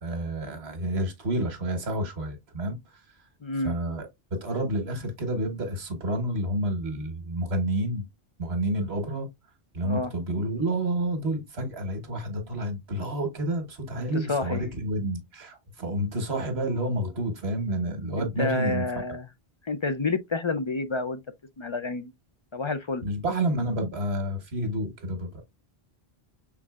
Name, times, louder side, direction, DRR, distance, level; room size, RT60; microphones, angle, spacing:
voice 1, 0.0-2.8 3.6-4.1 4.3-8.0 8.4-9.3 9.7-18.8 23.0-25.4, right 1 dB, 90° right, 1.6 m, -29 dB
voice 2, 3.4-3.8 9.8-10.1 14.0-14.6 18.2-19.3 19.6-21.2 21.6-22.1 22.5-23.1, left 3 dB, 45° left, 0.4 m, -29 dB
6.0 x 3.7 x 2.3 m
omnidirectional pair, 1.0 m